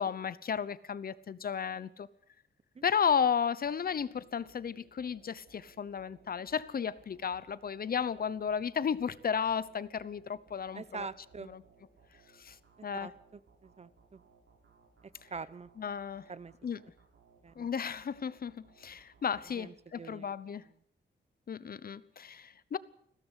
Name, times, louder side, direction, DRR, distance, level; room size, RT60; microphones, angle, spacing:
voice 1, 0.0-2.1 2.8-11.1 11.5-11.6 12.4-12.6 12.8-13.1 15.8-16.3 16.6-16.8 17.6-20.6 21.5-22.8, left 7 dB, 50° left, 0.9 m, -33 dB
sound 1, 3.6-20.2, right 4 dB, 80° right, 6.8 m, -64 dB
voice 2, 10.7-11.5 12.8-14.2 15.3-15.7 16.3-16.5 17.4-17.7 19.5-20.3, right 5 dB, 35° right, 0.9 m, -45 dB
21.0 x 16.5 x 8.2 m
wide cardioid pair, 140°, 19 cm